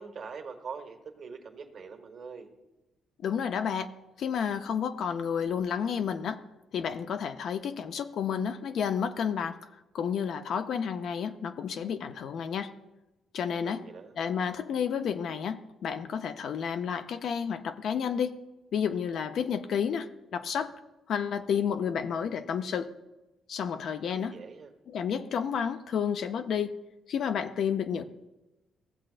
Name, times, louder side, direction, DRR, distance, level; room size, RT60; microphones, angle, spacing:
voice 1, 0.0-2.5 13.6-14.1 24.1-24.7, right 5 dB, 55° right, 4 dB, 1.3 m, -43 dB
voice 2, 3.2-3.9 4.2-6.4 6.7-9.6 9.9-12.7 13.3-13.8 14.2-18.4 18.7-20.7 21.1-22.9 23.5-24.3 24.9-26.8 27.1-28.0, left 7 dB, 65° left, 8 dB, 0.5 m, -31 dB
15.5 x 7.5 x 2.5 m, 1.0 s
cardioid pair, 90°, 0 cm